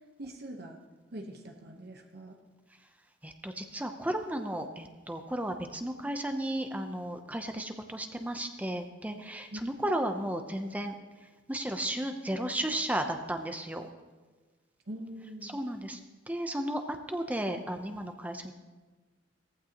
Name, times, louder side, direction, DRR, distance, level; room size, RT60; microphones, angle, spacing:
voice 1, 0.2-0.8 1.1-2.4 9.5-9.6 14.9-15.6, right 1 dB, 55° right, 3 dB, 1.0 m, -43 dB
voice 2, 3.2-10.9 11.2-13.9 15.4-16.0 16.3-18.5, right 1 dB, 10° right, 6 dB, 0.6 m, -34 dB
18.0 x 15.0 x 2.9 m, 1.3 s
head